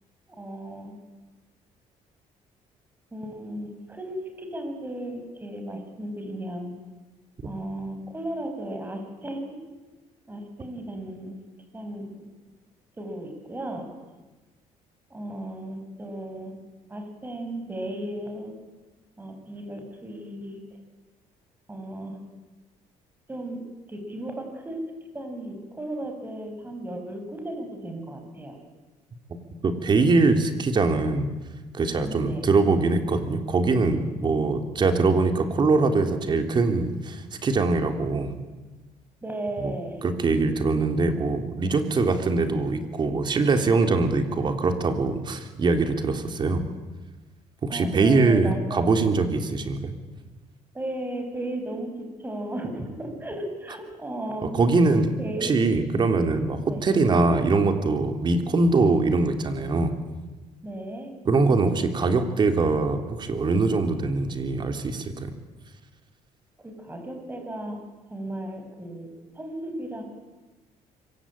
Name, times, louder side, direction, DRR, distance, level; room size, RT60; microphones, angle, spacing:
voice 1, 0.3-1.0 3.1-6.7 7.4-9.6 10.3-11.4 11.7-12.2 13.0-13.9 15.1-16.6 16.9-18.5 19.2-20.6 21.7-22.2 23.3-23.6 23.9-24.8 25.1-28.6 32.0-32.4 39.2-40.0 47.7-49.1 50.7-54.5 55.2-55.5 56.7-56.8 60.6-61.1 66.6-67.8 68.1-70.0, right 1 dB, 15° right, 5 dB, 6.4 m, -35 dB
voice 2, 29.3-31.3 31.7-38.4 39.6-39.7 40.0-46.7 47.6-49.9 54.4-55.1 55.4-59.9 61.2-65.3, right 3 dB, 35° right, 6 dB, 3.3 m, -23 dB
26.0 x 24.0 x 8.9 m, 1.2 s
cardioid pair, 130°, 13 cm